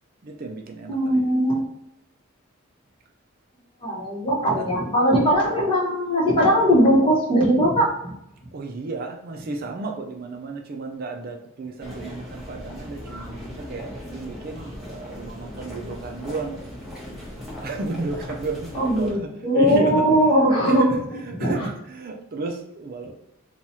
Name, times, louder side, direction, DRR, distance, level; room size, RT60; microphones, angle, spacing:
voice 1, 0.2-1.2 4.6-4.9 8.5-16.6 17.6-20.1 20.5-23.1, right 3 dB, 45° right, 3 dB, 0.4 m, -33 dB
voice 2, 0.9-1.6 3.8-8.1 18.7-20.9 21.4-21.7, equal, 25° left, -5 dB, 1.1 m, -20 dB
sound 1, 11.8-19.1, left 1 dB, ahead, 1.0 m, -38 dB
2.9 x 2.3 x 4.2 m, 0.85 s
head